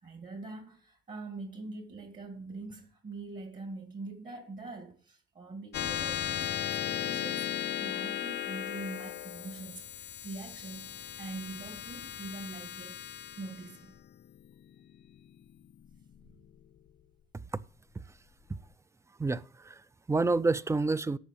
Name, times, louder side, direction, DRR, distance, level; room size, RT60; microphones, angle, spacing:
voice 1, 0.0-13.9, right 3 dB, 40° right, 2.2 m, -44 dB
sound 1, 5.7-16.6, left 12 dB, 60° left, 0.5 m, -37 dB
voice 2, 19.2-21.2, right 3 dB, 15° right, 0.5 m, -29 dB
10.0 x 6.6 x 5.8 m
cardioid pair, 90°, 20 cm